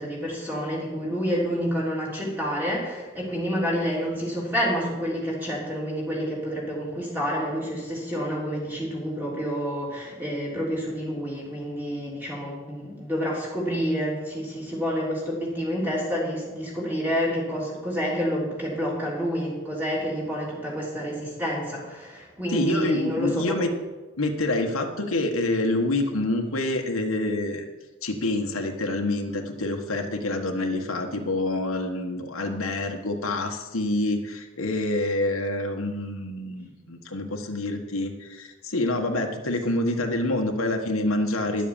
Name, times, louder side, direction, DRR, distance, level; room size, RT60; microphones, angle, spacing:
voice 1, 0.0-23.6, equal, 10° right, -5 dB, 3.3 m, -28 dB
voice 2, 22.5-23.7 24.2-27.6 28.0-41.7, left 2 dB, 90° left, 3 dB, 1.5 m, -27 dB
11.5 x 7.5 x 7.3 m, 1.2 s
head